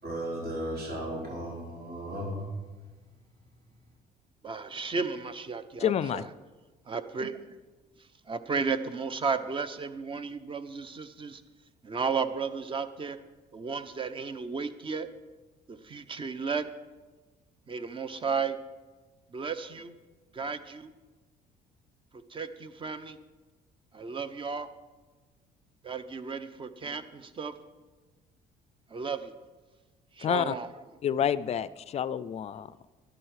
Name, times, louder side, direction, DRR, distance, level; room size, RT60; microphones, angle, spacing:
voice 1, 0.0-2.5, equal, 65° right, -4 dB, 4.6 m, -35 dB
voice 2, 4.4-6.3 6.9-7.4 8.3-11.4 11.8-13.2 13.5-15.1 15.7-16.7 17.7-18.6 19.3-19.9 20.3-20.9 22.1-23.2 23.9-24.7 25.8-27.5 28.9-29.3 30.1-30.8, right 5 dB, 30° right, 11 dB, 0.8 m, -34 dB
voice 3, 5.8-6.2 30.2-30.5 31.0-32.7, left 9 dB, 40° left, 17 dB, 0.4 m, -28 dB
11.5 x 11.0 x 4.9 m, 1.3 s
cardioid pair, 110°, 17 cm